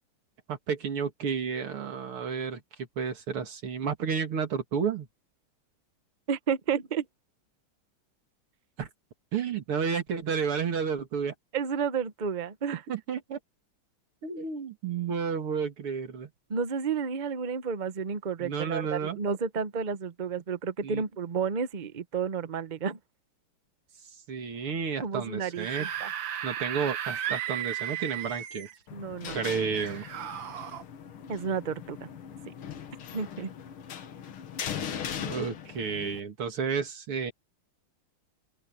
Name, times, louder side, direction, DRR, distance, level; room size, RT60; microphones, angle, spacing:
voice 1, 0.5-5.1 8.8-8.9 9.3-11.3 12.9-13.4 14.2-16.3 18.4-19.2 20.8-21.0 24.3-25.9 26.4-28.7 29.3-30.0 35.2-37.3, right 6 dB, 85° right, 3.1 m, -31 dB
voice 2, 6.3-7.1 11.5-12.8 16.5-23.0 25.0-26.1 28.9-29.4 31.3-32.1 32.5-32.6 33.1-33.5, right 6 dB, 45° right, 0.6 m, -31 dB
Screaming / Screech, 25.4-28.8 29.7-30.8, right 10 dB, 65° right, 1.8 m, -35 dB
sound 1, 28.9-36.2, left 8 dB, 85° left, 2.3 m, -39 dB
open air
omnidirectional pair, 2.3 m